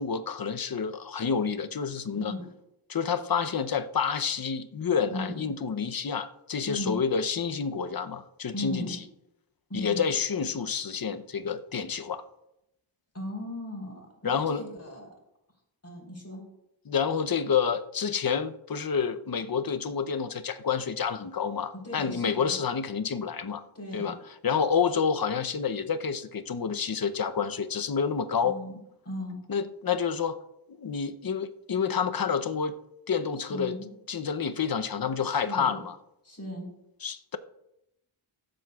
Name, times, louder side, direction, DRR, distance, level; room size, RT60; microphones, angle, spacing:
voice 1, 0.0-2.3 2.9-9.0 9.7-12.2 14.2-14.6 16.9-23.6 23.9-24.2 24.4-28.6 29.5-30.4 30.8-32.7 33.1-33.7 34.1-36.0 37.0-37.4, left 6 dB, 45° left, 11 dB, 0.7 m, -29 dB
voice 2, 5.1-5.5 6.7-7.0 8.5-9.0 9.7-10.0 13.1-15.1 15.8-16.4 21.8-22.6 23.7-24.1 28.4-28.8 29.0-29.4 33.5-33.9 35.2-35.8 36.2-36.7, left 1 dB, 30° left, -1 dB, 3.8 m, -37 dB
18.0 x 7.8 x 2.4 m, 0.85 s
wide cardioid pair, 55°, 49 cm